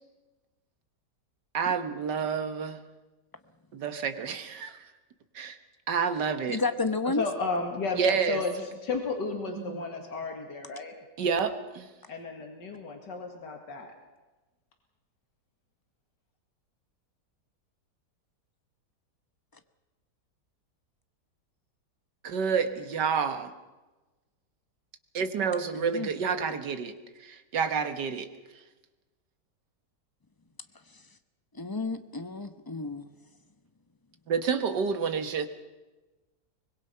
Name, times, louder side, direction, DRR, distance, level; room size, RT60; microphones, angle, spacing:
voice 1, 1.5-2.8 3.7-4.8 5.4-5.6 5.9-6.6 8.0-8.4 9.6-9.8 11.2-11.9 22.2-23.5 25.1-26.9 27.2-28.3 34.3-35.5, right 6 dB, 80° right, 10 dB, 2.0 m, -29 dB
voice 2, 6.5-7.2 25.7-26.1 31.5-33.1, left 3 dB, 15° left, 10 dB, 0.7 m, -31 dB
voice 3, 7.1-11.0 12.1-14.0, left 4 dB, 85° left, 3 dB, 2.7 m, -33 dB
24.0 x 21.5 x 5.7 m, 1.2 s
omnidirectional pair, 1.8 m